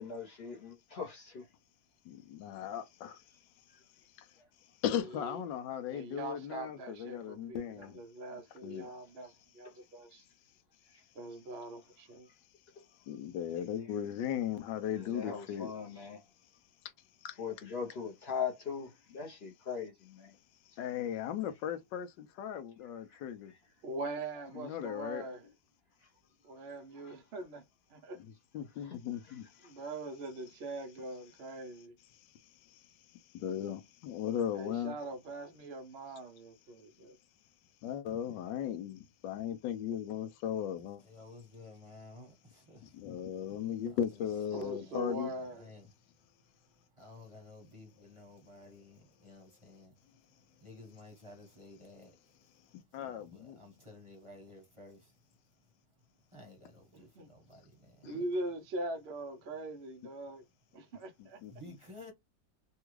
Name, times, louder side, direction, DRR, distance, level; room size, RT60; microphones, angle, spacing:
voice 1, 0.0-1.4 10.1-10.2 10.9-11.0 14.9-16.2 17.4-20.3 23.1-23.2 26.9-27.1, left 6 dB, 50° left, 0.8 m, -40 dB
voice 2, 2.0-3.2 4.2-4.3 4.8-8.0 8.6-8.9 13.1-15.7 17.2-17.4 20.8-23.5 24.5-25.3 28.1-29.5 32.2-35.0 37.8-41.0 42.8-45.3 52.7-53.6 58.0-58.2 61.2-61.5, left 9 dB, 80° left, 1.3 m, -37 dB
voice 3, 5.9-10.2 11.1-12.3 23.8-25.4 26.4-27.6 27.9-28.2 29.6-31.9 34.6-37.2 44.5-45.6 57.0-57.3 58.0-60.4 60.7-61.4, right 2 dB, 85° right, 0.5 m, -42 dB
voice 4, 41.0-43.0 43.9-44.2 44.5-46.0 46.6-50.3 50.6-52.6 52.9-55.2 56.3-58.2 61.5-62.1, left 2 dB, 25° right, 0.8 m, -54 dB
3.4 x 2.3 x 3.0 m
omnidirectional pair, 2.0 m